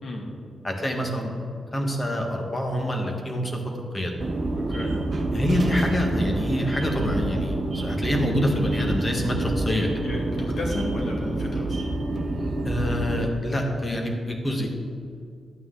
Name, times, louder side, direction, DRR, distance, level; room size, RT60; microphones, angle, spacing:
voice 1, 0.6-1.4 1.7-3.6 3.9-4.1 5.3-10.1 12.6-14.7, left 1 dB, 20° left, 2 dB, 1.4 m, -26 dB
sound 1, 4.2-13.3, right 2 dB, 40° right, 1.0 m, -27 dB
voice 2, 4.5-5.0 10.0-11.8, left 1 dB, 55° left, -2 dB, 2.1 m, -33 dB
11.5 x 8.9 x 3.8 m, 2.3 s
wide cardioid pair, 140°, 0 cm